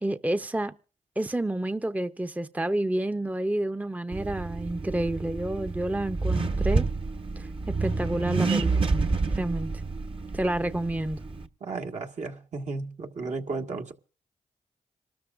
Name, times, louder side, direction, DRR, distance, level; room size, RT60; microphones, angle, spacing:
voice 1, 0.0-0.7 1.2-6.8 7.4-8.9 9.3-9.7 10.3-11.2, right 1 dB, 10° right, 0.7 m, -29 dB
Accelerating revving vroom, 4.1-11.5, right 3 dB, 45° right, 1.1 m, -29 dB
voice 2, 11.6-13.9, right 3 dB, 65° right, 1.7 m, -34 dB
26.5 x 13.0 x 2.5 m
supercardioid pair, 50°, 13 cm